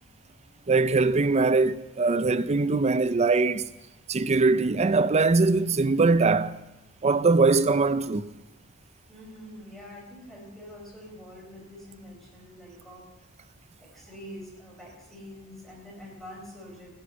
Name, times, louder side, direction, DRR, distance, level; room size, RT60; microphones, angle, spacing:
voice 1, 0.7-3.7 4.1-6.6 7.0-8.3, right 3 dB, 30° right, 0.5 m, -22 dB
voice 2, 9.1-13.1 13.8-16.9, equal, ahead, 4.6 m, -45 dB
15.5 x 11.0 x 6.9 m
head